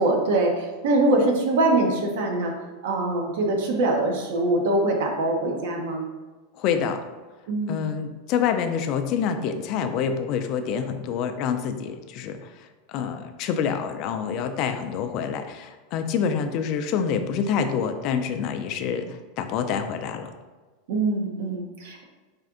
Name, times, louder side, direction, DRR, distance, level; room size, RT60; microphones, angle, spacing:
voice 1, 0.0-2.5 2.8-6.1 7.5-7.9 20.9-22.0, right 2 dB, 70° right, 1 dB, 0.8 m, -23 dB
voice 2, 6.6-7.0 7.7-20.3, left 7 dB, 45° left, 7 dB, 0.3 m, -27 dB
4.3 x 2.5 x 3.6 m, 1.3 s
supercardioid pair, 155°, 0 cm